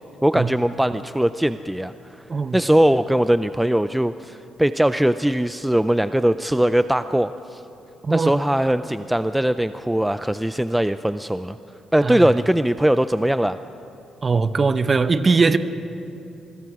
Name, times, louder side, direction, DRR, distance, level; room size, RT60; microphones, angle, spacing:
voice 1, 0.2-1.9 2.5-7.6 8.1-11.6 11.9-13.6, right 1 dB, 5° right, 12 dB, 0.4 m, -20 dB
voice 2, 8.0-8.4 12.0-12.3 14.2-15.6, right 4 dB, 35° right, 12 dB, 0.9 m, -20 dB
25.0 x 21.5 x 4.9 m, 2.8 s
cardioid pair, 90°, 0 cm